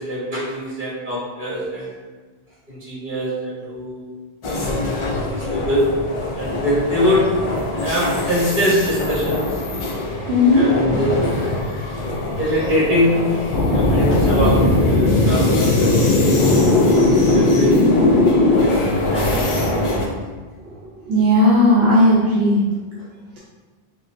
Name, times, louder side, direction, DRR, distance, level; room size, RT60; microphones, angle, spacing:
voice 1, 0.0-1.9 2.7-4.1 5.1-5.8 6.3-7.3 7.7-9.5 10.5-11.5 12.4-16.1 16.6-16.8 17.3-17.8 18.3-19.9, equal, 55° right, -7 dB, 1.3 m, -23 dB
sound 1, 4.4-20.1, left 1 dB, 50° left, 0.4 m, -25 dB
voice 2, 10.3-10.6 21.1-22.6, left 1 dB, 80° right, -6 dB, 0.8 m, -15 dB
sound 2, 13.5-18.6, left 2 dB, 75° left, 0.8 m, -16 dB
4.5 x 2.0 x 2.5 m, 1.3 s
omnidirectional pair, 1.0 m